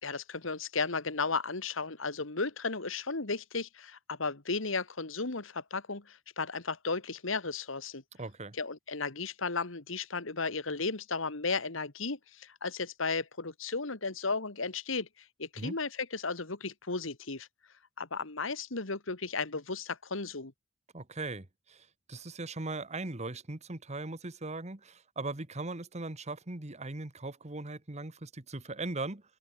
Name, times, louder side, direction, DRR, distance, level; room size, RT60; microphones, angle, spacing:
voice 1, 0.0-8.0 8.6-15.1 15.4-17.5 18.0-20.5, left 4 dB, 75° left, 2.0 m, -34 dB
voice 2, 8.2-8.6 15.6-15.8 20.9-29.2, right 2 dB, 35° right, 1.5 m, -39 dB
open air
head